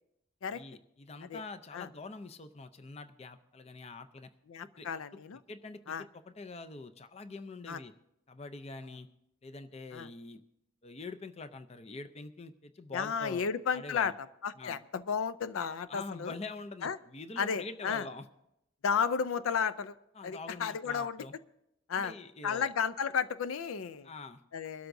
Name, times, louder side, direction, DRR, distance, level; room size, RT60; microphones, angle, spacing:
voice 1, 0.5-4.3 4.6-4.9 5.5-7.9 8.3-9.1 9.4-10.4 10.8-14.1 14.6-14.8 15.9-18.3 20.1-21.4 21.9-22.7 24.0-24.4, left 3 dB, 30° left, 10 dB, 0.5 m, -45 dB
voice 2, 4.5-5.4 5.9-6.0 7.7-7.8 9.9-10.1 12.9-14.1 14.4-16.4 16.8-17.0 17.4-18.1 18.8-20.0 20.2-21.2 21.9-22.1 22.4-24.1 24.5-24.9, left 6 dB, 85° left, 14 dB, 0.5 m, -33 dB
23.0 x 12.5 x 2.6 m, 0.83 s
head